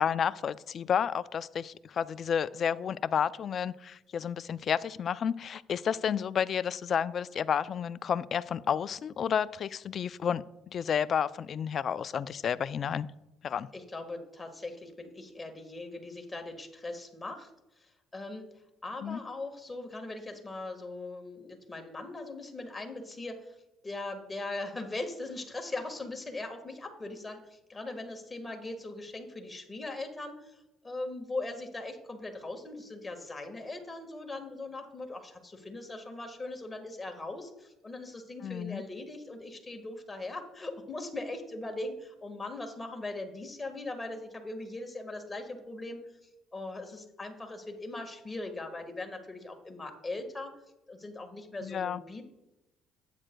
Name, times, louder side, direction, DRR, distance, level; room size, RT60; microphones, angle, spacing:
voice 1, 0.0-13.1 13.4-13.7 19.0-19.2 38.4-38.8 51.6-52.0, left 8 dB, 50° left, 16 dB, 0.3 m, -31 dB
voice 2, 13.7-17.5 17.8-18.5 18.8-23.6 23.8-46.0 46.5-50.5 50.9-52.2, left 2 dB, 20° left, 4 dB, 1.5 m, -40 dB
12.5 x 8.9 x 2.2 m, 0.96 s
cardioid pair, 95°, 0 cm